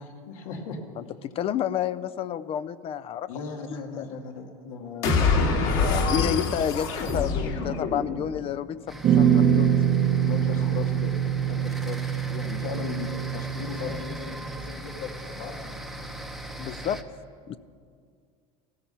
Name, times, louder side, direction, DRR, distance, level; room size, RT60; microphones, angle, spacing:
voice 1, 0.0-0.8 3.3-5.9 10.2-11.1 11.5-15.8, left 5 dB, 90° left, 2 dB, 2.3 m, -37 dB
voice 2, 1.0-3.3 4.0-4.1 5.7-9.8 16.6-17.0 17.5-17.6, left 10 dB, 35° left, 15 dB, 0.4 m, -30 dB
sound 1, 5.0-8.4, left 4 dB, 60° left, 2.3 m, -25 dB
sound 2, 8.9-17.0, right 1 dB, ahead, 0.8 m, -39 dB
sound 3, 9.0-14.0, right 9 dB, 35° right, 0.8 m, -24 dB
16.0 x 13.5 x 5.6 m, 2.2 s
supercardioid pair, 135°, 17 cm